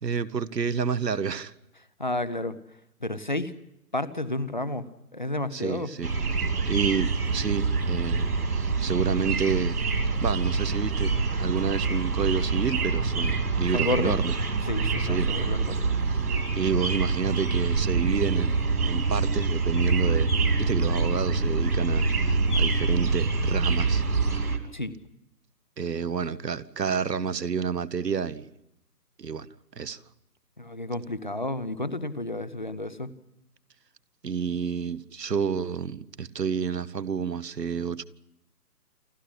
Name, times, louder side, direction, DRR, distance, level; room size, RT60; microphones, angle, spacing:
voice 1, 0.0-1.5 5.5-6.1 6.7-9.8 10.2-14.3 15.0-15.3 16.1-16.2 16.5-20.3 20.6-24.0 24.3-24.6 25.8-28.5 29.2-29.5 29.8-30.0 34.2-38.0, right 6 dB, 80° right, 15 dB, 1.3 m, -29 dB
voice 2, 2.0-2.6 3.0-3.5 3.9-4.9 5.1-5.9 13.7-14.2 14.7-15.8 24.7-24.9 30.6-33.1, left 2 dB, 30° left, 15 dB, 0.7 m, -31 dB
sound 1, 6.0-24.6, right 4 dB, 65° right, 2.9 m, -25 dB
28.5 x 11.5 x 9.9 m, 0.87 s
hypercardioid pair, 170°, 48 cm